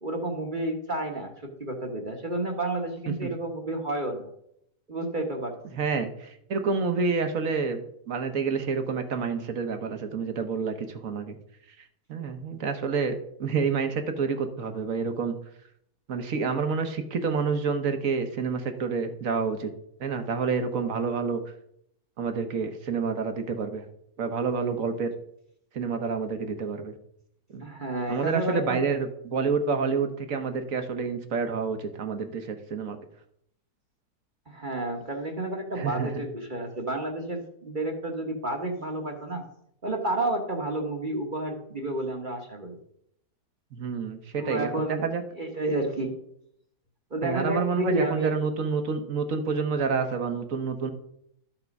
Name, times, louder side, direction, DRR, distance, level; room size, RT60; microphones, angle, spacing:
voice 1, 0.0-4.3 4.9-5.6 27.6-28.8 34.5-39.5 39.8-42.8 44.4-45.1 45.4-46.1 47.1-48.3, right 2 dB, 35° right, 2 dB, 1.3 m, -30 dB
voice 2, 5.7-11.4 12.1-13.1 13.4-15.4 16.1-19.7 20.0-21.4 22.2-23.8 24.2-25.1 25.7-27.0 27.5-27.7 28.1-33.0 35.8-36.1 43.7-45.2 47.2-50.9, right 5 dB, 60° right, 7 dB, 1.4 m, -28 dB
12.5 x 5.9 x 5.3 m, 0.73 s
omnidirectional pair, 1.7 m